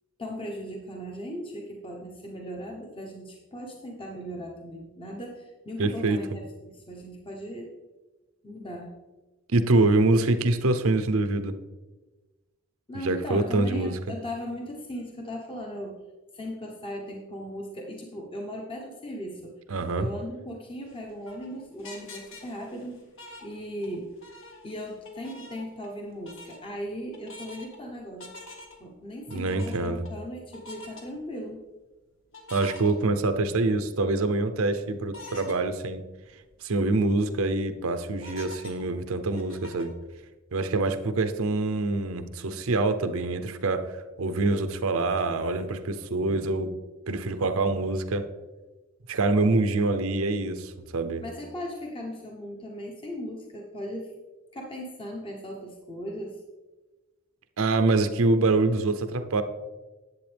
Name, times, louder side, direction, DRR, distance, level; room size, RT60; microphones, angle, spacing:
voice 1, 0.2-7.7 8.4-8.9 12.9-16.0 16.3-19.5 19.9-23.0 23.4-24.1 24.6-28.3 28.8-31.6 51.2-54.1 54.5-56.4, equal, 25° left, 0 dB, 1.0 m, -37 dB
voice 2, 5.8-6.2 9.5-11.6 12.9-13.9 19.7-20.1 29.3-30.0 32.5-36.0 36.6-39.9 40.5-43.9 44.2-46.7 47.1-48.2 49.1-51.2 57.6-59.4, right 2 dB, 75° right, 9 dB, 0.7 m, -25 dB
sound 1, 20.8-24.0 24.2-26.0 26.2-26.6 27.1-27.8 28.2-28.9 29.3-30.1 30.5-31.0 32.3-33.5 34.0-34.1 35.1-35.6 36.0-36.1 36.4-36.5 37.0-37.4 38.2-40.0, left 2 dB, 65° left, 1.7 m, -45 dB
10.5 x 8.0 x 3.4 m, 1.2 s
head